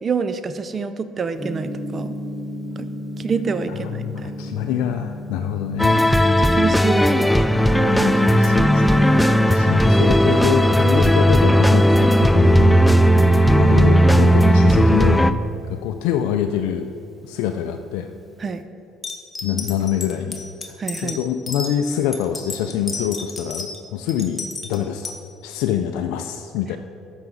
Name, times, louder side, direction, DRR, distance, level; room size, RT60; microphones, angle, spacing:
voice 1, 0.0-2.1 2.8-2.9 3.2-4.3 6.4-7.3 13.1-13.4 18.4-18.6 20.8-21.2, right 5 dB, 35° right, 11 dB, 0.6 m, -27 dB
Gong, 1.4-18.6, left 1 dB, 15° right, 1.5 m, -37 dB
voice 2, 3.8-6.0 7.9-9.0 9.4-12.8 13.1-15.4 15.7-16.9 17.2-18.1 19.4-20.4 20.7-25.1 25.4-26.8, left 9 dB, 80° left, 6 dB, 0.4 m, -25 dB
sound 1, 5.8-15.3, equal, 5° left, 0.4 m, -15 dB
sound 2, 19.0-21.7 22.1-23.8 24.1-25.2, left 3 dB, 25° left, 1.3 m, -32 dB
13.5 x 5.8 x 3.9 m, 2.8 s
supercardioid pair, 80°, 0 cm